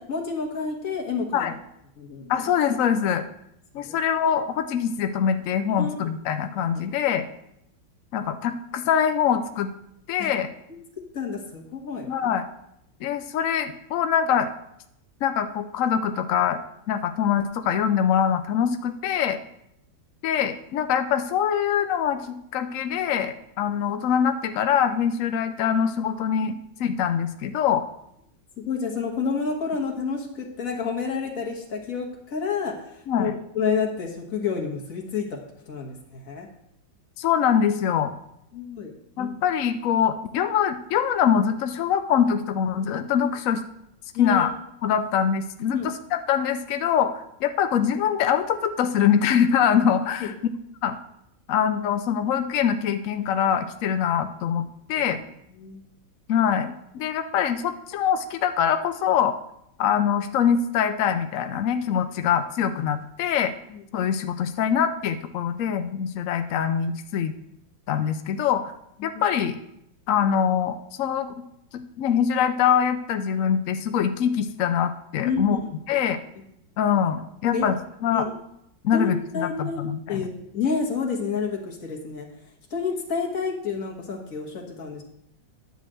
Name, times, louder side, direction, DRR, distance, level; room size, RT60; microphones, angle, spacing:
voice 1, 0.0-1.5 2.0-2.3 3.9-4.0 5.8-6.1 6.7-6.9 10.2-10.3 11.1-12.1 18.7-18.8 28.6-35.4 35.7-36.5 38.5-38.9 39.2-39.4 44.1-44.5 45.7-45.9 50.2-50.3 54.9-55.2 55.5-55.8 63.7-63.8 69.0-69.1 75.2-75.7 77.4-77.7 78.1-78.4 78.9-79.8 80.1-82.3 82.7-85.0, left 5 dB, 45° left, 0 dB, 1.8 m, -29 dB
voice 2, 2.3-3.3 3.7-7.3 8.1-9.7 10.1-10.5 12.1-12.4 13.0-14.5 15.2-16.6 16.9-19.4 20.2-27.8 33.1-33.3 37.2-38.1 39.2-43.6 44.2-44.5 44.8-50.3 50.8-51.0 51.5-54.6 54.9-55.2 56.3-59.4 59.8-63.5 63.9-67.4 67.9-68.6 69.0-69.6 70.1-71.4 71.7-75.6 75.9-76.2 76.8-77.7 78.0-78.3 78.8-80.3, left 8 dB, 80° left, 8 dB, 0.7 m, -24 dB
10.5 x 4.1 x 7.6 m, 0.78 s
omnidirectional pair, 2.1 m